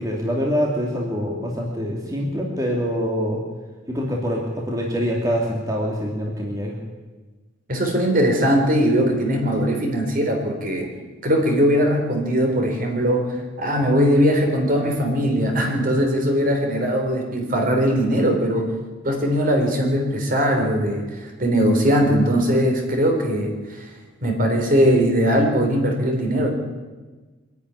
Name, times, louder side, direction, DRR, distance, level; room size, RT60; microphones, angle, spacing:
voice 1, 0.0-3.4 3.9-6.8, equal, 20° right, -2 dB, 2.5 m, -25 dB
voice 2, 7.7-10.9 11.2-13.3 13.6-18.7 19.0-23.9 24.2-26.5, equal, 45° right, 2 dB, 4.0 m, -20 dB
24.0 x 11.0 x 9.7 m, 1.3 s
head